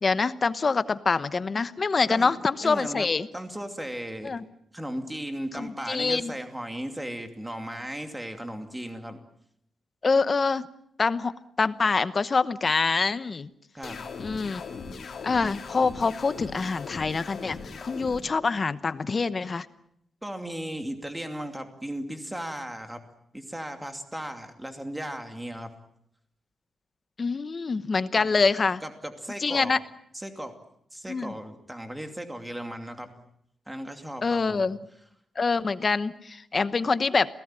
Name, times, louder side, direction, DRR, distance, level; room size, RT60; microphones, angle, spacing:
voice 1, 0.0-3.3 4.2-4.4 5.6-6.3 10.0-10.7 11.0-11.3 11.6-13.5 14.2-14.6 15.2-19.7 27.2-28.8 29.4-29.8 31.1-31.3 34.2-34.8 35.4-37.3, left 4 dB, 30° left, 14 dB, 1.0 m, -25 dB
voice 2, 2.6-3.1 3.3-4.4 4.7-9.2 13.7-14.1 20.2-23.0 23.3-25.7 28.2-28.3 28.8-29.7 30.1-30.6 30.9-33.1 33.7-34.6, right 1 dB, 5° right, 6 dB, 2.6 m, -36 dB
sound 1, 13.8-18.2, left 5 dB, 55° left, 3.0 m, -39 dB
28.0 x 18.0 x 9.0 m, 0.74 s
wide cardioid pair, 160°, 0 cm